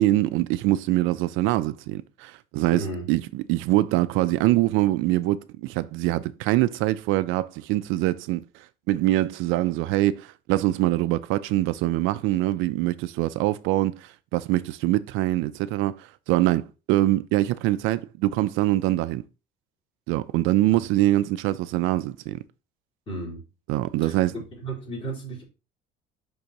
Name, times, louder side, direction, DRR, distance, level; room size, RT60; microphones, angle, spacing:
voice 1, 0.0-19.2 20.1-22.4 23.7-24.3, right 16 dB, 70° right, 0.4 m, -24 dB
voice 2, 2.7-3.1 20.7-20.8 23.1-23.4 24.0-24.1 24.6-25.4, right 2 dB, 25° left, 3.7 m, -33 dB
10.5 x 3.7 x 2.9 m
cardioid pair, 180°, 21 cm